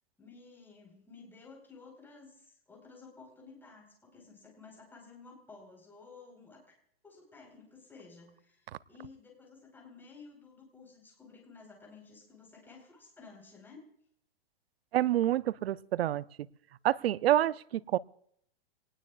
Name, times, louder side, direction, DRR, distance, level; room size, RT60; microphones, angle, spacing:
voice 1, 0.2-6.6 7.0-13.8, left 4 dB, 5° left, 0 dB, 4.5 m, -54 dB
voice 2, 14.9-16.2 16.8-18.0, right 13 dB, 75° right, 19 dB, 0.6 m, -27 dB
26.0 x 19.0 x 2.5 m, 0.68 s
hypercardioid pair, 150°, 30 cm